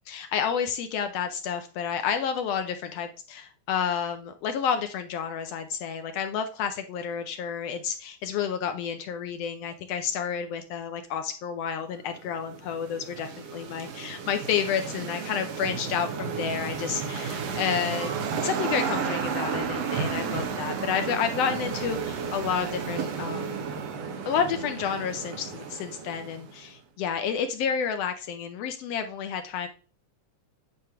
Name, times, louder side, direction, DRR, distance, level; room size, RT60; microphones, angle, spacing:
voice 1, 0.1-18.1 18.4-23.7 24.3-29.7, left 7 dB, 75° left, 8 dB, 1.5 m, -30 dB
sound 1, 12.1-26.7, right 6 dB, 65° right, 2.0 m, -33 dB
sound 2, 18.4-24.7, right 1 dB, 85° right, 2.9 m, -51 dB
9.5 x 3.3 x 5.5 m, 0.38 s
omnidirectional pair, 3.3 m